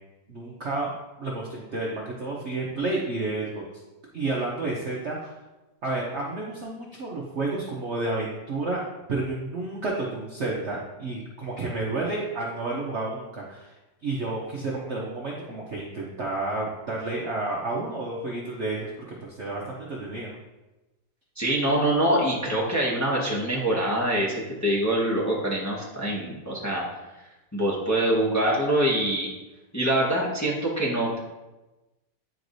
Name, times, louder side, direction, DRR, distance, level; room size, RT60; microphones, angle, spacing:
voice 1, 0.3-3.6 4.1-5.3 5.8-8.8 9.1-13.7 14.0-18.9 19.3-20.4, right 2 dB, 50° right, -3 dB, 0.9 m, -30 dB
voice 2, 21.4-26.8 27.5-29.3 29.7-31.2, right 1 dB, 10° left, -5 dB, 1.1 m, -24 dB
9.4 x 4.6 x 2.7 m, 1.1 s
omnidirectional pair, 2.0 m